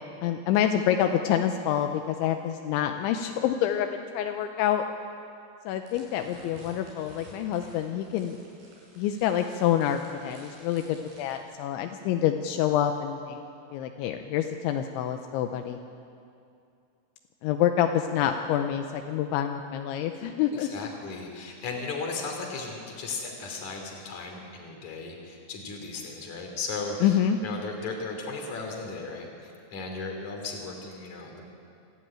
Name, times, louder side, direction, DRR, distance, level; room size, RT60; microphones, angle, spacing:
voice 1, 0.2-4.8 5.7-8.4 9.0-13.4 13.7-15.8 17.4-20.7 27.0-27.4, left 10 dB, 80° left, 6 dB, 3.1 m, -27 dB
sound 1, 5.8-11.4, right 2 dB, 70° right, 8.1 m, -52 dB
voice 2, 20.5-31.4, left 3 dB, 45° left, 2 dB, 3.8 m, -36 dB
26.0 x 13.5 x 8.9 m, 2.5 s
omnidirectional pair, 5.4 m